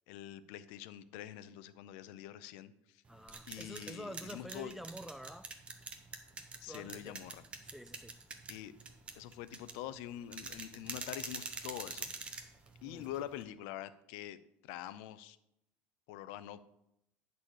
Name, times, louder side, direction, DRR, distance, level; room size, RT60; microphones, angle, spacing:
voice 1, 0.1-3.0 3.5-4.7 6.6-7.4 8.5-8.7 9.1-12.1 12.8-14.4 14.6-15.4 16.1-16.6, left 12 dB, 80° left, 0.6 m, -45 dB
voice 2, 3.1-5.5 6.7-7.2 7.6-8.2 12.8-13.1, equal, ahead, 0.3 m, -48 dB
sound 1, 3.1-13.4, right 4 dB, 20° right, 1.0 m, -46 dB
9.8 x 4.1 x 6.3 m
cardioid pair, 140°, 5 cm